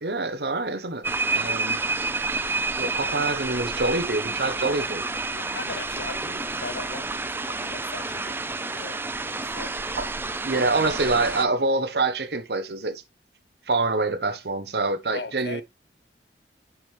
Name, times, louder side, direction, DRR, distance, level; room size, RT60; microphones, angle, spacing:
voice 1, 0.0-1.8 2.8-5.0 10.0-10.1 10.4-13.0 13.7-15.6, right 3 dB, 65° right, 0.9 m, -26 dB
sound 1, 1.0-11.5, right 3 dB, 10° right, 0.4 m, -29 dB
voice 2, 5.4-9.0 9.3-9.8 15.1-15.6, left 4 dB, 75° left, 0.7 m, -39 dB
6.2 x 6.1 x 3.2 m
head